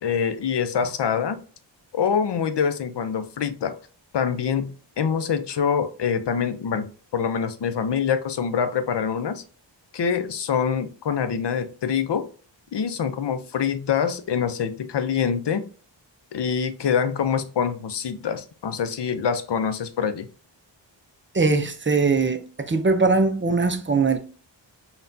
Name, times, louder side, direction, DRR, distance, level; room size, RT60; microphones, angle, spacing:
voice 1, 0.0-1.4 1.9-3.8 4.1-9.4 9.9-12.3 12.7-15.7 16.3-20.3, left 7 dB, 65° left, 0.6 m, -25 dB
voice 2, 21.3-24.2, right 4 dB, 25° right, 0.4 m, -21 dB
5.7 x 2.3 x 2.6 m
wide cardioid pair, 105°, 45 cm